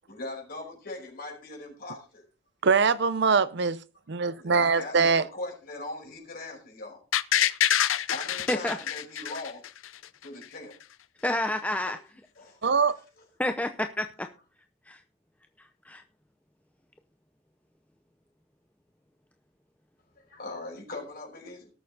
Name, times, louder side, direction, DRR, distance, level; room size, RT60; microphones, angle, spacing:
voice 1, 0.1-2.2 4.2-7.0 8.1-9.7 10.2-10.7 12.4-12.6 20.2-21.7, left 2 dB, 50° left, 5.2 m, -40 dB
voice 2, 2.6-3.8 4.1-5.2 12.6-13.0, right 5 dB, 60° right, 0.6 m, -23 dB
sound 1, 7.1-10.1 10.4-10.5, left 10 dB, 85° left, 0.6 m, -26 dB
voice 3, 11.2-12.0 13.4-14.3 14.9-15.0 15.9-16.0, left 1 dB, 5° left, 0.6 m, -29 dB
18.5 x 6.9 x 3.9 m
head